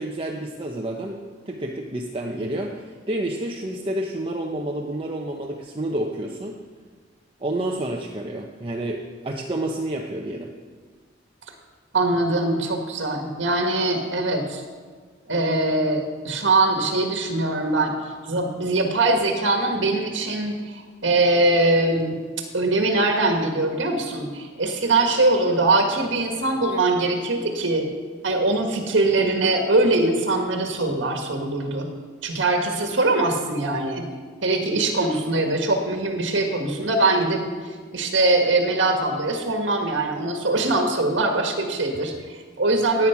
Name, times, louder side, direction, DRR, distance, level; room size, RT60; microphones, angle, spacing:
voice 1, 0.0-6.6 7.4-10.5, right 1 dB, 30° right, 0 dB, 0.9 m, -29 dB
voice 2, 11.9-14.6 15.3-17.9 18.3-22.2 22.5-27.9 28.2-31.9 32.2-34.0 34.4-37.4 37.9-43.1, right 2 dB, 70° right, 3 dB, 1.6 m, -22 dB
16.0 x 9.0 x 5.9 m, 1.5 s
head